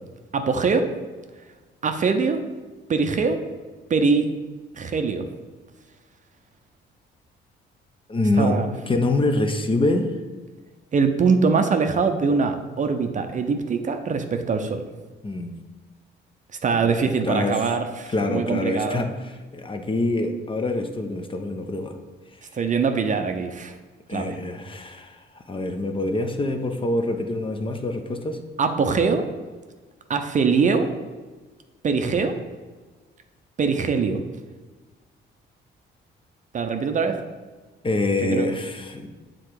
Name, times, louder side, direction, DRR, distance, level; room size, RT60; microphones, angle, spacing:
voice 1, 0.3-0.9 1.8-2.4 2.9-3.4 3.9-4.3 4.7-5.2 8.4-8.7 10.9-14.8 16.6-19.1 22.5-23.7 24.1-24.4 28.6-29.3 30.1-30.9 31.8-32.3 33.6-34.2 36.5-37.2 38.2-38.5, right 5 dB, 40° right, 7 dB, 0.6 m, -22 dB
voice 2, 8.1-8.6 8.9-10.1 15.2-15.6 16.8-17.7 18.1-21.9 24.1-25.2 25.5-28.4 37.8-39.1, left 2 dB, 25° left, 6 dB, 0.6 m, -25 dB
6.7 x 3.8 x 4.7 m, 1.4 s
cardioid pair, 90°, 20 cm